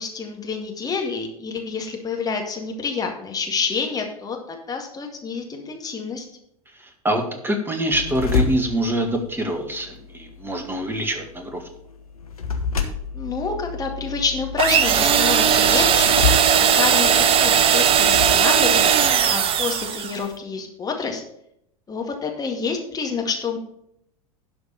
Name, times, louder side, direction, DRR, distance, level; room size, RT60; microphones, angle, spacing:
voice 1, 0.0-6.3 13.1-16.2 16.6-21.2 21.9-23.6, left 5 dB, 20° left, 2 dB, 2.1 m, -28 dB
voice 2, 6.8-11.6, right 1 dB, 10° right, 5 dB, 1.9 m, -25 dB
sound 1, 7.9-18.3, left 5 dB, 75° left, 1.3 m, -30 dB
sound 2, 14.6-20.2, right 8 dB, 30° right, 0.8 m, -18 dB
11.5 x 5.2 x 6.8 m, 0.74 s
figure-of-eight pair, 80°, 19 cm